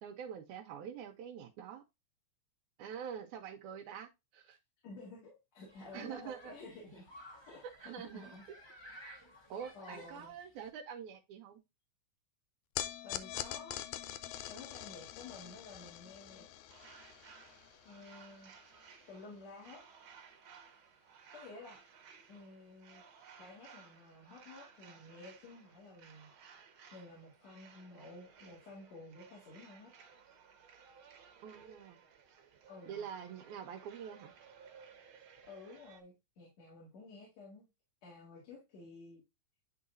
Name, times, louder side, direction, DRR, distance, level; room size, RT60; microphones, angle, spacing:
voice 1, 0.0-1.8 2.8-4.6 5.9-6.5 7.8-8.3 9.5-11.6 31.4-32.0 32.9-34.3, right 8 dB, 85° right, 2.1 m, -45 dB
voice 2, 4.8-7.1 7.4-8.4 9.7-10.3 13.0-13.8 14.5-16.4 17.8-18.5 19.1-19.8 21.3-21.8 22.3-23.0 23.4-26.3 26.9-29.9 32.7-33.0 35.4-37.7 38.0-39.2, left 3 dB, 60° left, 3.2 m, -52 dB
Human group actions, 5.7-10.7, equal, 20° left, 0.6 m, -56 dB
sound 1, 12.8-19.2, left 12 dB, 80° left, 1.9 m, -44 dB
sound 2, 16.7-36.0, right 6 dB, 60° right, 1.5 m, -59 dB
10.5 x 3.9 x 2.5 m
omnidirectional pair, 3.4 m